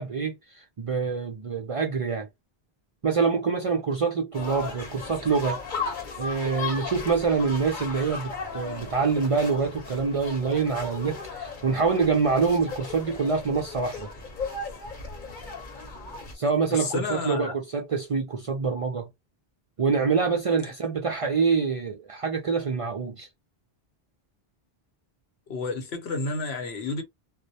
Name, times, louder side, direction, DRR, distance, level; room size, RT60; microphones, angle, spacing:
voice 1, 0.0-2.3 3.0-5.6 6.2-14.1 16.3-19.1 19.8-23.3, right 5 dB, 50° right, 0.4 m, -26 dB
sound 1, 4.3-16.3, left 4 dB, 55° left, 0.9 m, -36 dB
voice 2, 16.7-17.5 25.5-27.0, left 3 dB, 90° left, 1.0 m, -30 dB
2.2 x 2.0 x 2.7 m
omnidirectional pair, 1.0 m